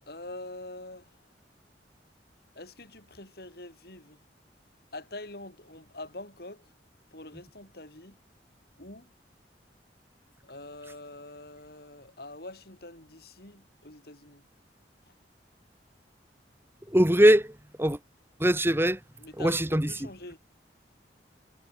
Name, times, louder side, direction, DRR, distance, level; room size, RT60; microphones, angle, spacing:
voice 1, 0.0-1.2 2.5-4.2 4.9-6.7 7.1-8.2 8.8-9.1 10.4-14.4 15.1-15.2 19.2-20.4, left 2 dB, 60° left, 5.8 m, -44 dB
voice 2, 16.9-18.0 18.4-19.0 19.4-19.9, equal, 15° right, 2.0 m, -22 dB
head